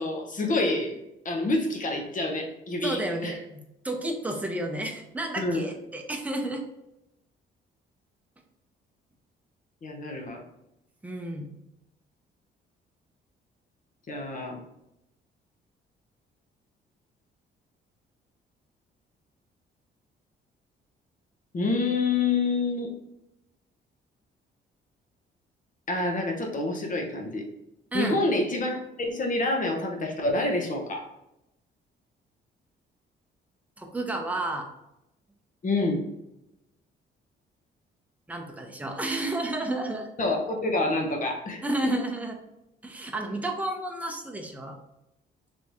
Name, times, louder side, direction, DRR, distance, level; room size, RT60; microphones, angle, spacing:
voice 1, 0.0-3.4 5.4-5.7 9.8-10.4 14.1-14.6 21.5-22.9 25.9-27.5 27.9-31.1 35.6-36.0 40.2-41.9, left 2 dB, 40° left, 1 dB, 0.9 m, -27 dB
voice 2, 2.8-6.6 11.0-11.5 27.9-28.2 33.8-34.7 38.3-40.1 41.6-42.3 42.8-44.8, right 2 dB, 5° right, 2 dB, 0.7 m, -31 dB
3.4 x 3.1 x 2.6 m, 0.87 s
cardioid pair, 90°, 20 cm